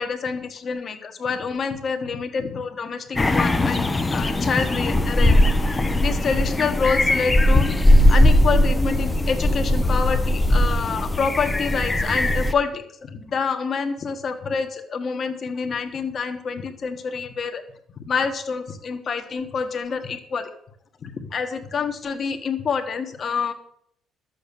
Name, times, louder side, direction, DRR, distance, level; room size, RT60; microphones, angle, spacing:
voice 1, 0.0-3.8 4.1-5.4 6.0-7.8 8.1-17.6 18.0-20.5 21.0-23.5, left 5 dB, 30° left, 6 dB, 1.5 m, -27 dB
sound 1, 3.2-12.5, left 1 dB, 10° left, 0.7 m, -19 dB
13.0 x 7.8 x 6.9 m, 0.68 s
cardioid pair, 175°, 0 cm